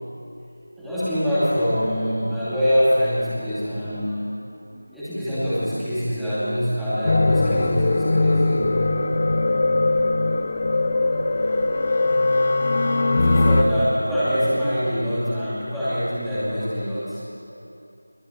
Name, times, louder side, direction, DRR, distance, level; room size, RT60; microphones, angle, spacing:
voice 1, 0.8-4.3 4.7-8.8 13.2-17.2, equal, ahead, -17 dB, 2.6 m, -24 dB
sound 1, 7.1-13.6, left 2 dB, 20° left, 0.9 m, -20 dB
23.0 x 20.5 x 9.7 m, 2.7 s
figure-of-eight pair, 180°, 0 cm